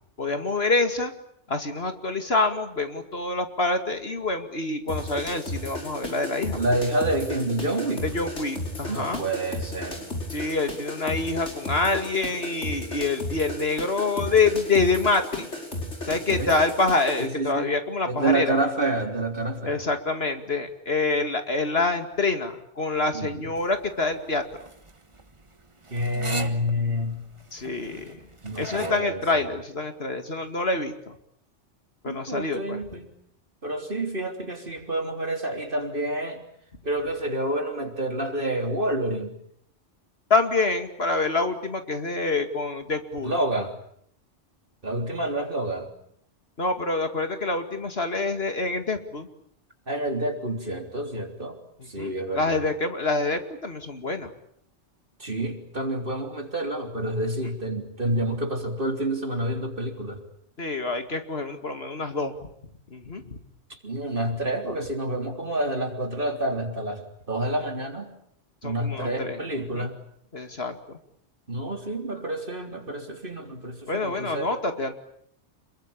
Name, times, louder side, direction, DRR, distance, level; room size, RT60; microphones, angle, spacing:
voice 1, 0.2-1.1 1.5-6.6 8.0-9.2 10.3-15.5 16.1-18.5 19.6-24.4 27.5-28.2 28.6-31.1 32.0-32.8 40.3-43.4 46.6-49.3 51.8-54.3 60.6-62.5 62.9-63.4 68.6-69.9 70.3-70.8 73.9-74.9, left 3 dB, 60° left, 7 dB, 2.6 m, -26 dB
sound 1, 4.9-17.3, left 1 dB, 75° left, 5.7 m, -34 dB
voice 2, 6.6-8.0 8.9-10.1 16.1-16.6 17.2-17.7 18.1-19.8 23.1-23.4 25.9-27.2 28.4-29.2 32.1-33.1 33.6-36.4 36.8-39.3 43.2-43.7 44.8-45.9 49.9-51.6 51.9-52.6 55.2-60.2 63.7-68.1 68.6-70.0 71.5-74.5, right 1 dB, 45° right, 4 dB, 3.8 m, -28 dB
sound 2, 23.6-29.0, right 2 dB, 25° right, 1.5 m, -38 dB
28.0 x 22.5 x 8.8 m, 0.68 s
omnidirectional pair, 1.2 m